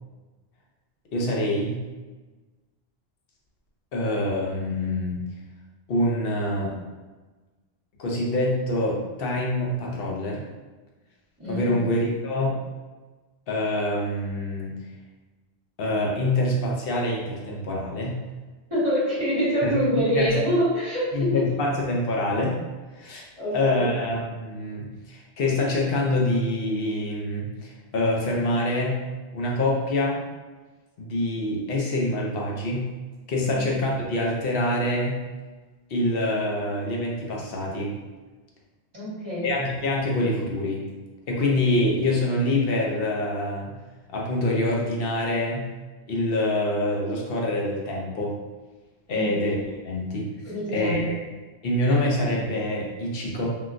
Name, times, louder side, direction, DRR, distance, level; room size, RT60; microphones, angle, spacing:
voice 1, 1.1-1.8 3.9-5.2 5.9-6.7 8.0-10.4 11.5-12.6 13.5-14.7 15.8-18.2 19.6-19.8 20.1-20.3 21.1-22.6 23.0-23.3 23.5-29.0 29.3-30.2 31.0-32.9 33.3-35.2 35.9-37.9 39.4-40.8 41.3-43.7 44.1-45.7 46.1-48.4 49.1-49.6 49.8-50.3 50.7-51.2 51.6-53.5, left 1 dB, 65° left, -2 dB, 0.9 m, -25 dB
voice 2, 11.4-11.7 18.7-21.1 23.4-23.9 33.4-33.6 38.9-39.5 49.1-49.3 50.4-51.1, equal, 25° right, -11 dB, 1.2 m, -25 dB
3.7 x 2.3 x 2.4 m, 1.3 s
omnidirectional pair, 1.1 m